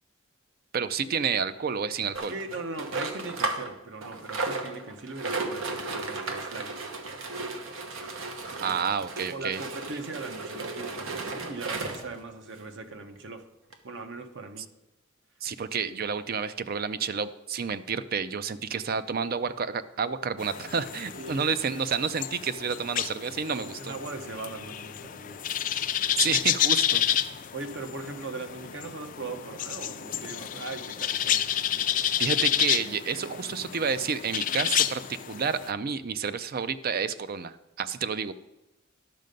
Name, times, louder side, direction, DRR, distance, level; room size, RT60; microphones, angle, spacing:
voice 1, 0.7-2.3 8.6-9.6 15.4-23.9 26.2-27.0 32.2-38.3, right 6 dB, 45° right, 13 dB, 0.5 m, -30 dB
sound 1, 2.1-3.7 4.0-12.2 12.8-12.9 13.2-13.3 13.7-13.8, right 3 dB, 85° right, 1.1 m, -34 dB
voice 2, 2.3-6.7 8.6-8.7 9.3-13.4 13.8-14.6 21.1-21.5 23.6-25.4 27.5-32.3, right 3 dB, 60° right, 6 dB, 1.0 m, -40 dB
sound 2, 20.4-35.7, left 10 dB, 40° left, 0.4 m, -30 dB
11.0 x 6.6 x 5.2 m, 0.94 s
head